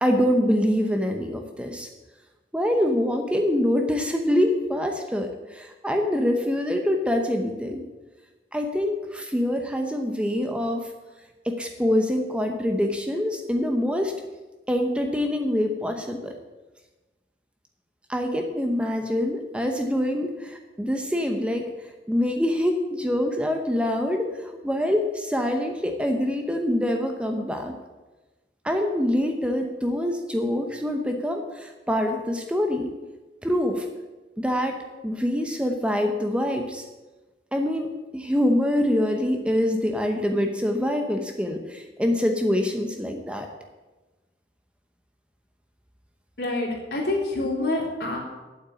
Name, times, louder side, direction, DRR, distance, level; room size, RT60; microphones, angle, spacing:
voice 1, 0.0-1.9 2.5-7.8 8.5-10.9 11.4-14.1 14.7-16.3 18.1-21.7 22.1-27.7 28.6-32.9 33.4-33.9 34.4-36.9 37.5-37.9 38.1-43.5, left 1 dB, 5° right, 4 dB, 0.8 m, -25 dB
voice 2, 46.4-48.2, left 2 dB, 65° left, -3 dB, 3.7 m, -27 dB
8.6 x 7.9 x 9.0 m, 1.2 s
head